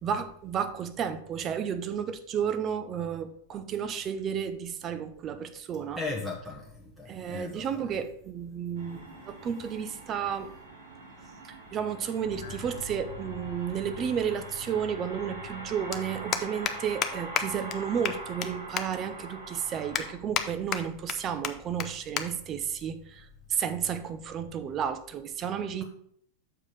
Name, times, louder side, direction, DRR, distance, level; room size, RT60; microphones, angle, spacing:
voice 1, 0.0-6.0 7.1-9.0 9.3-10.5 11.4-25.8, right 8 dB, 30° right, 0.7 m, -32 dB
voice 2, 6.0-7.7, left 3 dB, ahead, 1.1 m, -36 dB
sound 1, 8.7-20.1, right 2 dB, 65° right, 2.2 m, -44 dB
sound 2, 12.2-24.7, left 4 dB, 60° left, 1.3 m, -49 dB
sound 3, 13.6-13.7 15.1-15.2 15.4-15.6 15.9-16.0 16.3-16.7 17.0-17.1 17.4-17.5 17.7-17.8 18.0-18.5 18.8-18.9 19.3-19.4 19.9-20.4 20.7-21.1 21.4-21.5 21.8-21.9 22.2-22.3 22.6-22.8 23.6-23.8, left 9 dB, 30° left, 0.7 m, -29 dB
6.8 x 4.9 x 5.5 m
figure-of-eight pair, 90°, 0 cm